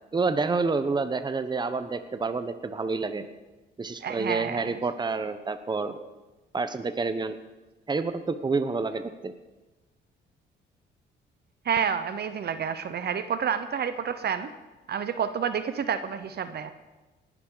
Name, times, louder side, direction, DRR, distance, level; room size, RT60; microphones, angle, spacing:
voice 1, 0.1-3.2 3.8-6.1 6.5-7.4 7.9-9.3, right 4 dB, 20° right, 10 dB, 0.9 m, -28 dB
voice 2, 4.0-4.7 11.6-14.5 14.9-16.7, right 7 dB, 55° right, 11 dB, 0.9 m, -29 dB
18.5 x 11.0 x 4.0 m, 1.1 s
cardioid pair, 90°, 20 cm